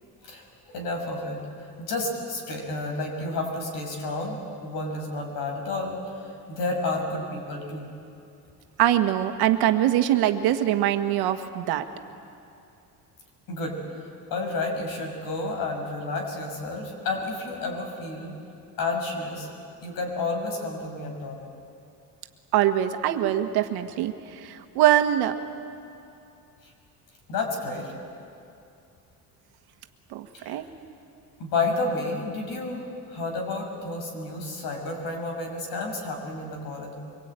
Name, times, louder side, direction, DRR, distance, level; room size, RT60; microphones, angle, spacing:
voice 1, 0.2-7.9 13.5-13.8 14.3-18.3 18.8-19.5 19.8-21.4 27.3-27.9 30.3-30.6 31.4-36.9, left 2 dB, 60° left, 2 dB, 6.4 m, -31 dB
voice 2, 8.8-11.8 22.5-25.4 30.1-30.6, right 12 dB, 80° right, 7 dB, 1.7 m, -23 dB
24.5 x 23.5 x 9.1 m, 2.6 s
cardioid pair, 160°, 38 cm